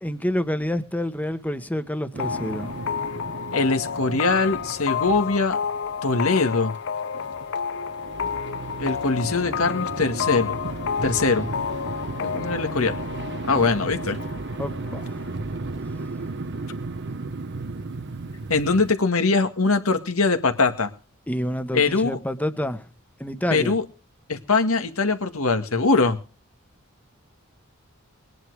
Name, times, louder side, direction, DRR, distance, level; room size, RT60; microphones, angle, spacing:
voice 1, 0.0-2.8 14.6-15.3 21.3-22.9 23.2-23.8, left 1 dB, 10° left, 1.2 m, -28 dB
sound 1, 2.1-18.9, right 3 dB, 55° right, 0.8 m, -35 dB
sound 2, 2.2-15.7, left 7 dB, 60° left, 0.6 m, -31 dB
voice 2, 3.5-5.6 6.0-6.7 8.8-10.6 11.0-11.5 12.2-13.0 13.4-14.2 18.5-20.9 21.7-22.2 23.5-23.8 24.3-26.2, left 3 dB, 85° left, 2.0 m, -22 dB
21.5 x 10.5 x 4.9 m
head